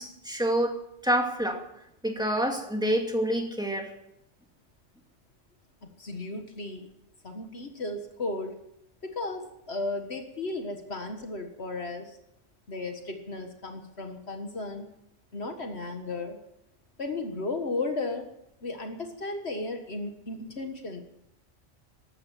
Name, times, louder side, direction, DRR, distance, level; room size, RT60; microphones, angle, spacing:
voice 1, 0.0-1.6 2.0-3.9, equal, 5° right, 2 dB, 2.4 m, -27 dB
voice 2, 6.0-6.9 7.2-8.6 9.0-12.2 12.7-14.9 15.3-16.4 17.0-18.3 18.6-21.0, left 2 dB, 60° left, 5 dB, 1.9 m, -34 dB
15.0 x 12.5 x 7.5 m, 0.79 s
omnidirectional pair, 1.3 m